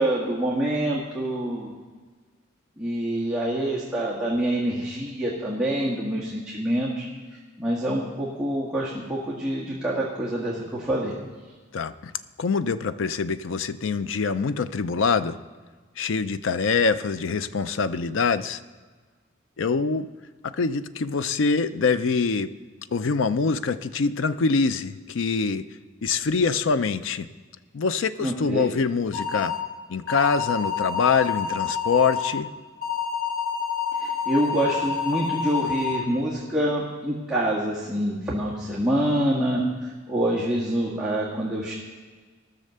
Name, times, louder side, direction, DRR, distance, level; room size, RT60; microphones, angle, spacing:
voice 1, 0.0-1.7 2.8-7.0 7.6-11.1 28.2-28.7 34.0-41.7, right 1 dB, 5° right, -8 dB, 1.6 m, -26 dB
voice 2, 11.7-12.1 12.4-15.4 16.0-18.6 19.6-20.1 20.4-22.5 22.9-25.7 26.0-27.3 27.7-29.5 29.9-32.5, left 4 dB, 80° left, 13 dB, 0.5 m, -24 dB
sound 1, 29.1-29.6 30.1-32.3 32.8-36.0, left 7 dB, 50° left, 1.5 m, -28 dB
16.0 x 6.4 x 6.7 m, 1.4 s
head